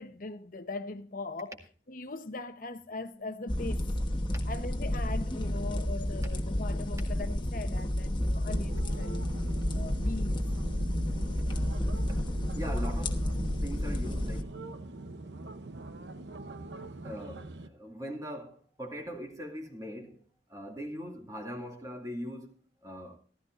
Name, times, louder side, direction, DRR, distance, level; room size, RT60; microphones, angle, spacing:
voice 1, 0.0-1.5 1.9-3.9 4.5-9.3 9.7-10.5, left 2 dB, 50° left, 0.9 m, -40 dB
sound 1, 3.1-17.4, right 2 dB, ahead, 2.5 m, -55 dB
sound 2, 3.5-14.4, left 1 dB, 25° left, 1.2 m, -31 dB
sound 3, 8.5-17.7, right 2 dB, 80° right, 0.8 m, -43 dB
voice 2, 12.6-13.2 13.6-14.5 17.0-20.2 20.5-23.2, equal, 20° right, 2.2 m, -41 dB
15.0 x 14.0 x 2.5 m
head